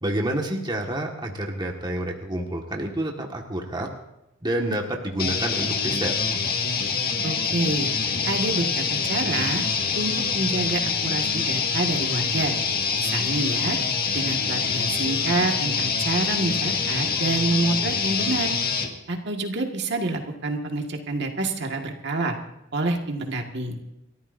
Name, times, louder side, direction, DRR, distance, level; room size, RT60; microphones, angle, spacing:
voice 1, 0.0-3.9 4.4-6.1, right 1 dB, 20° right, 1 dB, 1.7 m, -28 dB
sound 1, 5.2-18.9, left 5 dB, 50° left, 1.8 m, -25 dB
voice 2, 7.2-7.9 8.3-9.6 10.0-12.6 13.0-13.8 14.1-18.5 19.1-22.4 22.7-23.8, right 2 dB, 60° right, 2 dB, 1.9 m, -27 dB
29.5 x 14.0 x 2.7 m, 0.90 s
head